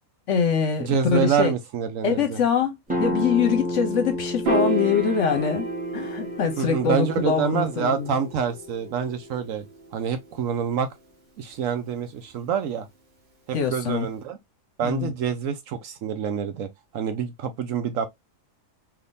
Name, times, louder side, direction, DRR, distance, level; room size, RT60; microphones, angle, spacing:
voice 1, 0.3-1.5 2.0-5.7 5.9-8.2 13.5-14.1 14.8-15.1, left 6 dB, 60° left, 1.0 m, -24 dB
voice 2, 0.8-2.4 6.6-9.6 9.9-10.9 11.4-12.9 13.5-14.4 14.8-18.1, right 7 dB, 70° right, 0.9 m, -27 dB
sound 1, 2.9-8.3, left 1 dB, 5° right, 1.0 m, -32 dB
Piano, 4.5-10.8, right 1 dB, 45° right, 1.1 m, -32 dB
3.5 x 2.8 x 2.5 m
omnidirectional pair, 1.6 m